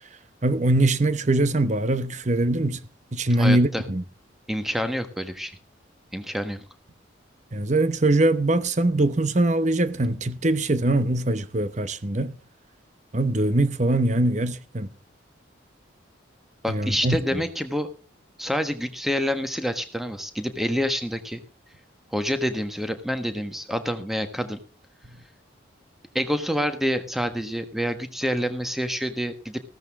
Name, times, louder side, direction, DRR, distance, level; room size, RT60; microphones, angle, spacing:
voice 1, 0.4-2.8 3.1-4.0 7.5-12.4 13.1-14.9 16.7-17.4, right 2 dB, 35° right, 0.9 m, -22 dB
voice 2, 3.4-3.8 4.5-5.6 6.1-6.6 16.6-17.9 18.4-21.4 22.1-24.6 26.1-29.6, equal, ahead, 1.3 m, -27 dB
15.5 x 13.5 x 3.6 m
head